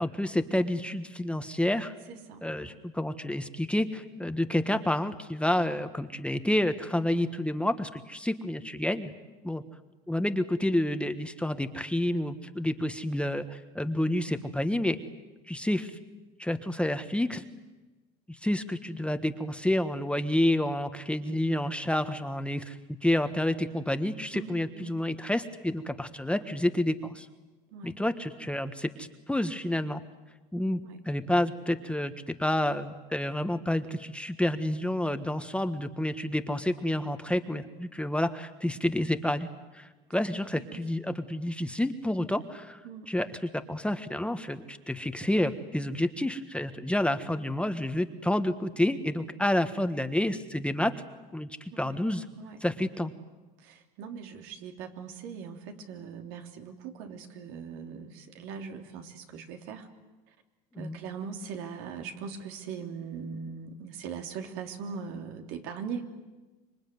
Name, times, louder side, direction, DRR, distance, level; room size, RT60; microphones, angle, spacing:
voice 1, 0.0-1.9 2.4-9.1 9.4-9.6 10.1-15.0 15.5-16.0 16.4-17.4 18.4-22.8 23.0-27.3 27.8-30.0 30.5-30.8 31.0-39.5 39.7-42.8 43.1-50.9 51.3-52.2 52.6-53.1 60.7-61.0, left 1 dB, 5° left, 9 dB, 1.4 m, -29 dB
voice 2, 2.1-2.8 4.2-4.3 24.3-25.0 27.7-28.0 30.8-31.0 40.5-40.8 42.8-43.1 51.7-52.0 52.4-52.8 53.6-59.9 60.8-66.1, right 6 dB, 75° right, 4 dB, 3.3 m, -41 dB
26.5 x 23.0 x 9.5 m, 1.2 s
supercardioid pair, 105°, 21 cm